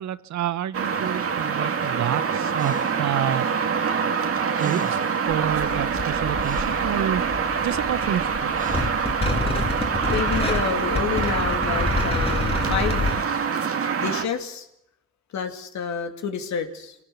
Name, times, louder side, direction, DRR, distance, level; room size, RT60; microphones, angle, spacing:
voice 1, 0.0-3.7 4.6-7.2 7.6-8.5, right 11 dB, 70° right, 15 dB, 1.0 m, -29 dB
sound 1, 0.7-14.2, right 6 dB, 50° right, 2.0 m, -25 dB
Breathing, 2.5-3.1 4.2-4.3 4.5-5.2 5.9-6.9 8.5-9.1, right 5 dB, 25° right, 1.2 m, -37 dB
sound 2, 5.3-13.2, left 2 dB, 20° left, 2.8 m, -28 dB
voice 2, 10.1-13.1 14.0-14.7 15.3-17.0, left 7 dB, 65° left, 5 dB, 2.7 m, -29 dB
26.0 x 17.5 x 7.1 m, 0.81 s
cardioid pair, 90°, 30 cm